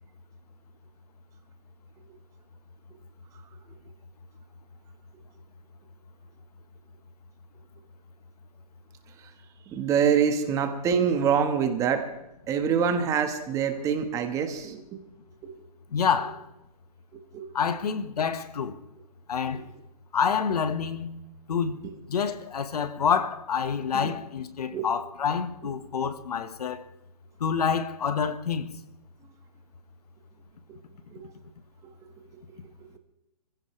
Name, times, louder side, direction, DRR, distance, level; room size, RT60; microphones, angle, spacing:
voice 1, 9.7-12.1 12.5-15.0 15.4-15.5 17.3-17.5 23.9-24.1 24.7-24.9 31.1-31.3, right 7 dB, 15° right, 1.4 m, -25 dB
voice 2, 15.9-16.5 17.5-18.8 19.3-19.7 20.1-21.2 21.5-21.8 22.1-26.9 27.4-28.7, left 6 dB, 70° left, 1.6 m, -27 dB
26.0 x 15.5 x 3.3 m
hypercardioid pair, 155°, 20 cm